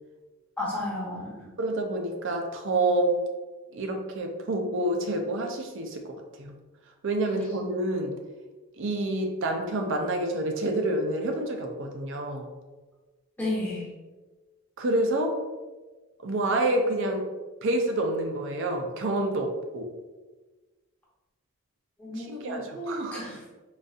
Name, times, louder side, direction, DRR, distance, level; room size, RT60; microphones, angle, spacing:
voice 1, 0.6-1.5 13.4-13.9 22.0-23.4, left 1 dB, 10° left, -7 dB, 0.7 m, -33 dB
voice 2, 1.6-3.2 3.7-6.5 7.0-8.2 8.8-12.5 14.8-15.4 16.2-17.3 17.6-19.9 22.2-23.3, right 1 dB, 60° right, 3 dB, 0.5 m, -28 dB
3.9 x 2.5 x 2.4 m, 1.2 s
head